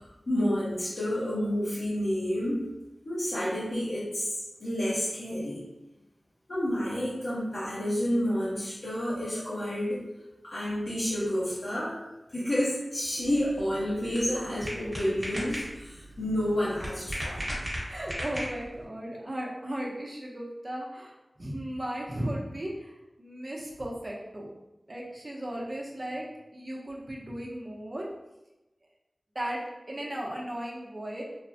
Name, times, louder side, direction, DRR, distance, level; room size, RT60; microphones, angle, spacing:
voice 1, 0.0-2.7 3.0-5.6 6.5-10.0 10.4-12.0 12.3-17.4, equal, 70° left, -10 dB, 0.8 m, -30 dB
sound 1, 13.2-18.8, equal, 15° right, 1.1 m, -37 dB
voice 2, 17.9-24.5 24.9-28.1 29.3-31.2, right 1 dB, 40° right, -2 dB, 0.6 m, -36 dB
3.2 x 2.0 x 2.6 m, 0.97 s
wide cardioid pair, 65°, 0 cm